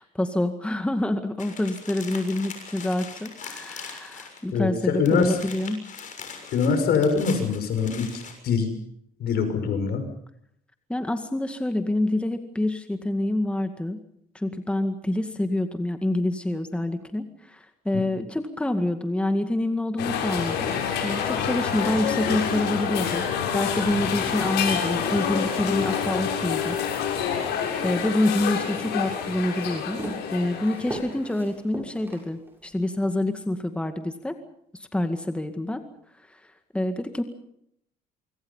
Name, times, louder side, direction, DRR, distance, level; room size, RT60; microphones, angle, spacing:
voice 1, 0.0-5.8 10.9-14.0 14.3-20.7 21.0-26.8 27.1-30.0 30.3-34.4 34.7-35.8 36.3-36.4 36.7-37.2, left 1 dB, 5° left, 7 dB, 2.0 m, -27 dB
sound 1, 1.4-4.6 4.8-8.3, left 6 dB, 50° left, 6.8 m, -41 dB
voice 2, 4.5-5.4 6.5-8.7 9.2-10.0, left 5 dB, 70° left, 8 dB, 6.0 m, -23 dB
sound 2, 20.0-31.3, left 7 dB, 85° left, 6.7 m, -27 dB
Walk footsteps, 28.4-32.8, right 1 dB, 10° right, 7.4 m, -39 dB
26.0 x 24.0 x 5.6 m, 0.73 s
cardioid pair, 110°, 17 cm